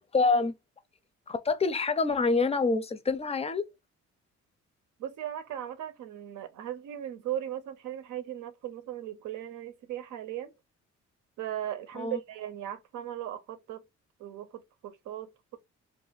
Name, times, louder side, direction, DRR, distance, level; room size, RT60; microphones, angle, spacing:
voice 1, 0.1-0.5 1.3-3.6 12.0-12.2, left 4 dB, 20° left, 0.5 m, -26 dB
voice 2, 5.0-10.5 11.4-13.8 14.2-15.6, right 11 dB, 80° right, 0.7 m, -38 dB
2.5 x 2.4 x 4.0 m
cardioid pair, 90°, 30 cm